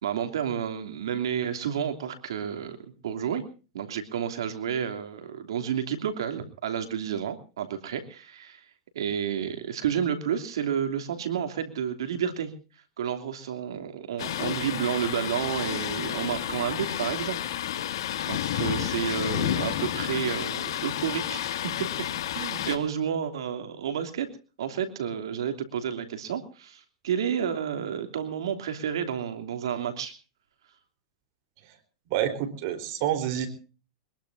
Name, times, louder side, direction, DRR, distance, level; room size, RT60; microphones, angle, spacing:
voice 1, 0.0-3.4 3.7-8.7 8.9-12.5 13.0-17.4 17.7-17.9 18.3-22.1 22.3-24.3 24.6-30.1, right 8 dB, 85° right, 7 dB, 3.1 m, -31 dB
Thunder, 14.2-22.8, left 11 dB, 80° left, 2.4 m, -31 dB
voice 2, 32.1-33.5, right 11 dB, 55° right, 10 dB, 4.1 m, -28 dB
23.0 x 21.5 x 2.7 m, 0.35 s
supercardioid pair, 140°, 2 cm